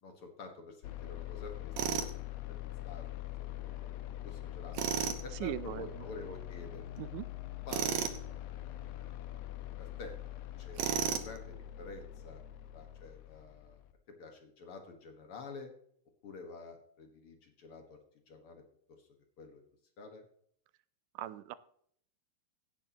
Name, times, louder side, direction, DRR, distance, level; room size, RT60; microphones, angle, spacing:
voice 1, 0.0-2.1 2.5-2.6 2.9-3.0 3.4-3.9 4.2-4.9 5.2-6.8 7.7-7.9 9.8-10.2 10.6-12.4 12.7-13.8 14.2-15.7 16.2-18.0 18.3-18.6 19.0-19.1 19.4-19.6 20.0-20.2, left 3 dB, 50° left, 4 dB, 2.1 m, -49 dB
sound 1, 0.8-13.9, left 13 dB, 75° left, 1.7 m, -44 dB
Tools, 1.8-2.1 4.7-5.2 7.7-8.2 10.8-11.4, right 8 dB, 70° right, 2.2 m, -32 dB
voice 2, 5.4-6.0 7.0-7.3 21.2-21.6, right 13 dB, 85° right, 15 dB, 2.2 m, -39 dB
16.5 x 8.7 x 3.0 m, 0.65 s
omnidirectional pair, 3.6 m